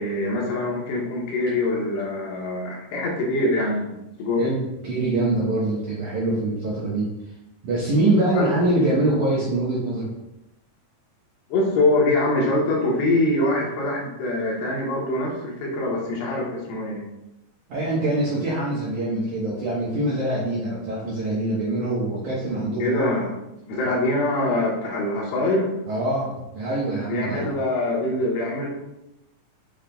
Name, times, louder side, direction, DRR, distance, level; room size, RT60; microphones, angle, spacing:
voice 1, 0.0-4.4 8.3-8.4 11.5-17.0 22.8-23.3 23.6-25.7 27.1-28.7, left 2 dB, 75° left, -2 dB, 2.9 m, -24 dB
voice 2, 4.4-7.1 7.6-10.1 17.7-23.2 25.9-27.5, right 2 dB, 70° right, -6 dB, 1.9 m, -24 dB
8.1 x 5.2 x 2.2 m, 0.91 s
omnidirectional pair, 4.9 m